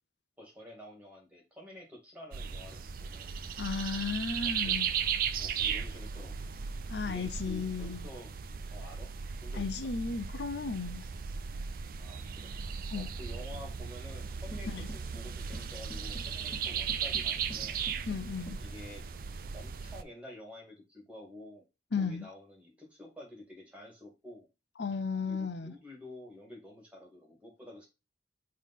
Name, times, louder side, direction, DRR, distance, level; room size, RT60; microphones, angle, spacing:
voice 1, 0.4-3.3 4.6-4.8 5.4-6.3 7.0-8.3 8.7-9.1 9.4-9.7 12.0-12.5 12.9-17.8 18.6-19.0 19.5-21.6 22.0-24.5 25.2-27.9, left 1 dB, 10° right, 2.3 m, -49 dB
sound 1, 2.3-20.0, right 7 dB, 55° right, 0.5 m, -36 dB
voice 2, 3.6-4.9 6.9-8.1 9.6-11.0 12.9-13.1 14.7-14.9 18.1-18.6 21.9-22.3 24.8-25.7, left 5 dB, 75° left, 0.7 m, -34 dB
sound 2, 14.5-18.7, left 1 dB, 20° left, 2.8 m, -50 dB
5.6 x 3.3 x 5.5 m
head